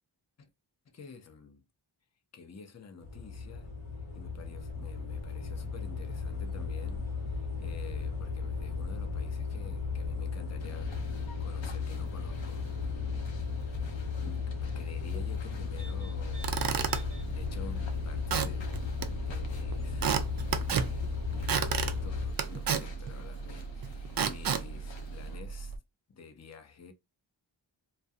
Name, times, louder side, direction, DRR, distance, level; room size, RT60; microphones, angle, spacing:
voice 1, 0.9-1.6 2.3-3.7 4.1-20.1 20.7-25.7 26.1-26.9, left 5 dB, 35° left, 0.6 m, -50 dB
sound 1, 3.0-22.3, left 5 dB, 90° left, 1.1 m, -35 dB
sound 2, 10.6-25.4, left 4 dB, 70° left, 0.8 m, -51 dB
Squeak / Wood, 16.2-25.8, right 7 dB, 50° right, 0.5 m, -34 dB
2.3 x 2.2 x 2.6 m
cardioid pair, 45°, 46 cm